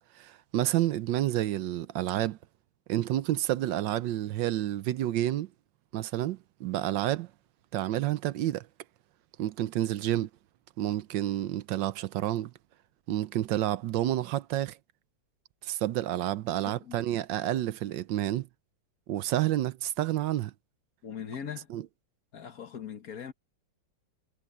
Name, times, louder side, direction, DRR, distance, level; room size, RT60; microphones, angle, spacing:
voice 1, 0.1-2.4 2.9-5.5 5.9-7.3 7.7-8.7 9.4-10.3 10.8-12.5 13.1-14.8 15.6-18.5 19.1-20.5 21.7-21.8, right 13 dB, 85° right, 1.4 m, -29 dB
voice 2, 16.6-17.0 21.0-21.7 22.3-23.3, left 8 dB, 55° left, 1.6 m, -40 dB
omnidirectional pair, 2.0 m